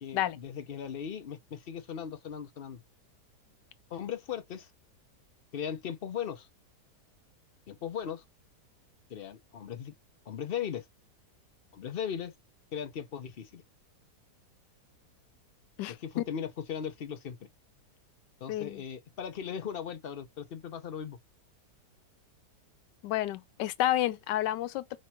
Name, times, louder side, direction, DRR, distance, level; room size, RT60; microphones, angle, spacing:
voice 1, 0.0-2.8 3.9-4.7 5.5-6.5 7.7-8.2 9.1-9.9 10.3-10.9 11.7-12.3 12.7-13.6 15.9-17.5 18.4-21.2, left 8 dB, 55° left, 0.6 m, -38 dB
voice 2, 18.5-18.8 23.0-25.0, left 13 dB, 90° left, 1.3 m, -30 dB
5.1 x 3.2 x 2.9 m
omnidirectional pair, 1.8 m